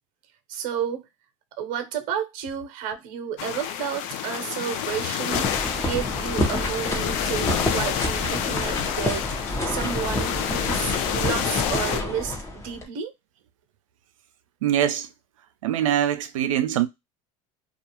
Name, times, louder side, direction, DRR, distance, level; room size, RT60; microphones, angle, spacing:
voice 1, 0.5-1.1 1.6-5.5 5.8-9.2 9.7-13.1, right 8 dB, 60° right, 0.8 m, -31 dB
sound 1, 3.4-12.0, left 10 dB, 65° left, 0.5 m, -28 dB
sound 2, 5.3-12.9, left 1 dB, 15° left, 0.9 m, -28 dB
voice 2, 14.6-15.1 15.6-16.9, right 11 dB, 90° right, 0.5 m, -23 dB
2.4 x 2.3 x 2.9 m
hypercardioid pair, 95°, 16 cm